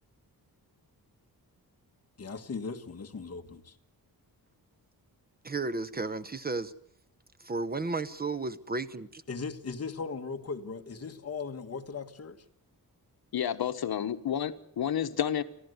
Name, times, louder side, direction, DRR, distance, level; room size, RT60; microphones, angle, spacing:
voice 1, 2.2-3.8 9.3-12.4, left 4 dB, 40° left, 5 dB, 1.7 m, -38 dB
voice 2, 5.4-6.7 7.4-9.2, right 3 dB, 25° right, 14 dB, 0.8 m, -33 dB
voice 3, 13.3-15.4, left 9 dB, 70° left, 10 dB, 1.2 m, -30 dB
29.5 x 12.5 x 8.0 m, 0.75 s
wide cardioid pair, 150°, 38 cm